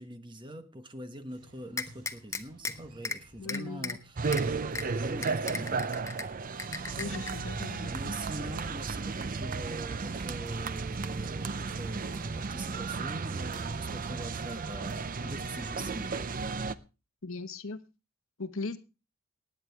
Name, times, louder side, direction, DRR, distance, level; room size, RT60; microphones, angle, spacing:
voice 1, 0.0-5.9 6.6-7.2 7.5-16.3, right 1 dB, 20° right, 1.1 m, -43 dB
sound 1, 1.3-16.6, right 2 dB, 85° right, 4.0 m, -57 dB
sound 2, 1.8-2.7 3.0-3.2 3.5-3.9 4.3-4.4 4.8-4.9 5.2-6.2 6.6-7.3, left 4 dB, 15° left, 0.7 m, -35 dB
voice 2, 3.4-4.0 6.9-8.1 17.2-17.8 18.4-18.8, left 3 dB, 60° left, 1.2 m, -38 dB
sound 3, 4.2-16.7, right 4 dB, 40° right, 0.5 m, -34 dB
18.5 x 9.2 x 3.4 m
head